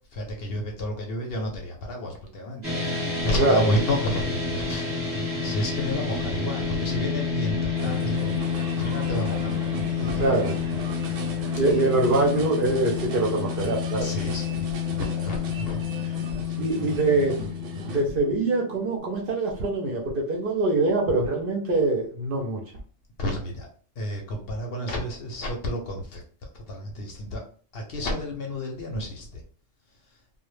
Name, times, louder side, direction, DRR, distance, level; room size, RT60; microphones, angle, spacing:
voice 1, 0.1-8.3 8.7-10.5 14.0-15.8 16.3-16.6 23.2-23.7 24.0-26.2 26.5-27.4 27.7-29.4, left 1 dB, 65° left, 2 dB, 0.7 m, -31 dB
sound 1, 2.6-19.0, left 6 dB, 15° right, 0.8 m, -29 dB
voice 2, 3.4-3.7 10.0-10.5 11.4-14.1 16.6-17.4 17.8-22.6, right 2 dB, 60° right, 0 dB, 0.6 m, -24 dB
sound 2, 7.7-18.0, right 2 dB, 85° right, 0.9 m, -37 dB
2.1 x 2.0 x 3.1 m, 0.43 s
omnidirectional pair, 1.2 m